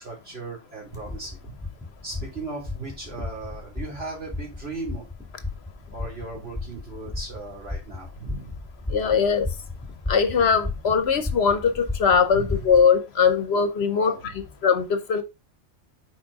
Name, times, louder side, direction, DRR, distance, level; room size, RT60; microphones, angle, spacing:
voice 1, 0.0-1.6 2.0-5.1 5.9-8.7 12.3-12.7 13.9-14.4, right 3 dB, 55° right, 3.1 m, -37 dB
sound 1, 0.9-12.8, left 3 dB, 5° left, 2.1 m, -35 dB
voice 2, 8.9-9.5 10.1-14.3 14.6-15.2, left 6 dB, 65° left, 1.0 m, -21 dB
6.1 x 4.5 x 3.9 m
omnidirectional pair, 1.2 m